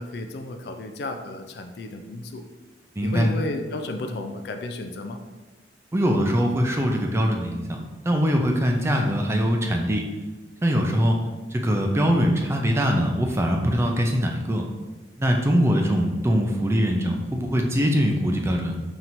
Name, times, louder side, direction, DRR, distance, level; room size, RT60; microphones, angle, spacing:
voice 1, 0.0-2.4 3.0-5.2, left 2 dB, 60° left, 6 dB, 0.3 m, -32 dB
voice 2, 3.0-3.3 5.9-10.0 10.6-11.2 11.5-14.6 15.2-18.8, equal, 15° right, 2 dB, 0.3 m, -22 dB
5.6 x 2.9 x 2.6 m, 1.2 s
head